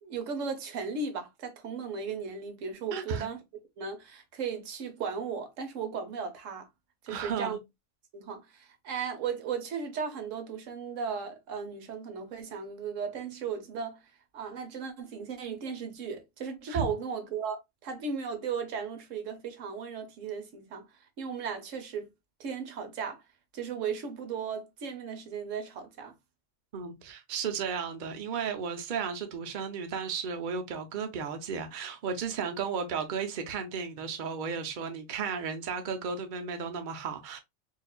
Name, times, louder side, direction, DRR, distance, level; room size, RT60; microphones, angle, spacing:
voice 1, 0.0-3.4 3.8-6.7 7.0-7.6 8.1-14.0 14.3-20.9 21.2-22.1 22.4-23.2 23.5-26.1, right 6 dB, 90° right, 1.2 m, -36 dB
voice 2, 2.9-3.3 7.1-7.6 16.7-16.8 26.7-37.4, right 6 dB, 45° right, 0.8 m, -34 dB
4.5 x 2.4 x 2.3 m
omnidirectional pair, 1.3 m